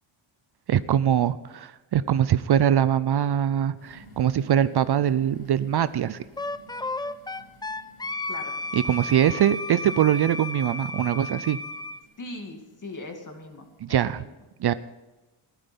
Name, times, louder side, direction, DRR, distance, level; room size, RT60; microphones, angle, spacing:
voice 1, 0.7-6.2 8.7-11.6 13.8-14.2 14.6-14.7, right 10 dB, 55° right, 15 dB, 0.5 m, -23 dB
sound 1, 3.8-13.8, right 1 dB, 80° left, 5.9 m, -54 dB
Wind instrument woodwind instrument, 6.4-12.0, left 2 dB, 10° left, 0.4 m, -33 dB
voice 2, 12.2-14.3, left 2 dB, 40° left, 3 dB, 2.5 m, -40 dB
15.0 x 13.0 x 5.4 m, 1.1 s
wide cardioid pair, 135°, 49 cm